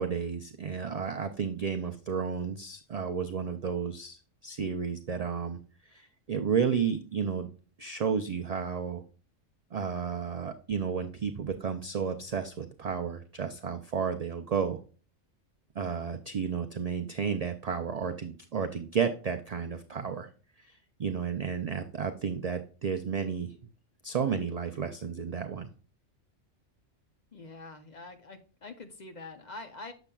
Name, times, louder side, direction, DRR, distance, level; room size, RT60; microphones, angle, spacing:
voice 1, 0.0-5.6 5.9-7.5 7.8-9.0 9.7-14.8 15.8-20.3 20.6-23.6 24.0-25.7, right 6 dB, 80° right, 6 dB, 0.3 m, -32 dB
voice 2, 27.3-29.9, left 3 dB, 45° left, 7 dB, 0.6 m, -45 dB
7.0 x 6.6 x 2.3 m, 0.38 s
omnidirectional pair, 1.3 m